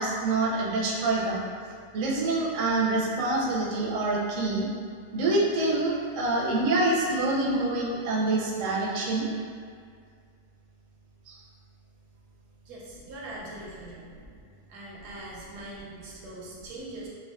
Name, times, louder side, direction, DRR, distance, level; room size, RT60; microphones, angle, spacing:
voice 1, 0.0-1.4 1.9-4.7 5.1-9.3 11.3-11.4, right 2 dB, 70° right, -4 dB, 0.8 m, -26 dB
voice 2, 12.6-14.1 14.7-17.1, right 1 dB, 90° right, -4 dB, 1.2 m, -42 dB
3.4 x 2.3 x 2.4 m, 2.1 s
omnidirectional pair, 1.7 m